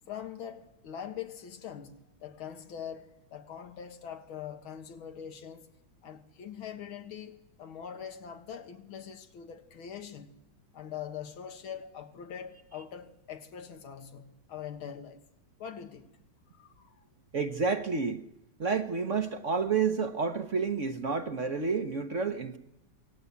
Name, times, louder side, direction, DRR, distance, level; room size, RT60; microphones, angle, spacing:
voice 1, 0.1-5.7 6.0-10.4 10.7-15.2 15.6-16.1 16.5-17.0, left 8 dB, 85° left, 2.3 m, -43 dB
voice 2, 17.3-18.2 18.6-22.6, right 5 dB, 45° right, 1.1 m, -30 dB
27.0 x 18.0 x 8.4 m
omnidirectional pair, 2.2 m